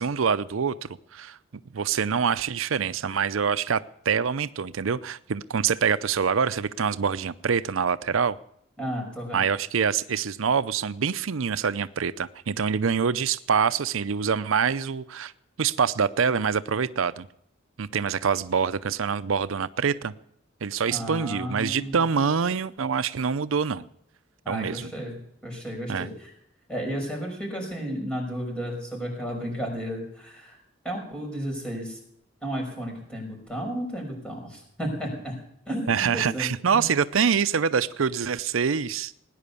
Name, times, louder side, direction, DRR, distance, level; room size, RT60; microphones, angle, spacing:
voice 1, 0.0-1.4 1.7-3.8 4.1-8.4 9.3-15.3 15.6-17.3 17.8-20.1 20.6-23.9 24.5-24.9 25.9-26.1 35.9-39.2, right 6 dB, 90° right, 15 dB, 0.6 m, -25 dB
voice 2, 8.8-9.5 20.9-22.0 24.4-25.2 25.4-26.3 26.7-30.6 30.8-32.0 32.4-35.4 35.7-36.8, equal, 5° left, 0 dB, 5.7 m, -33 dB
18.0 x 10.0 x 6.9 m, 0.75 s
head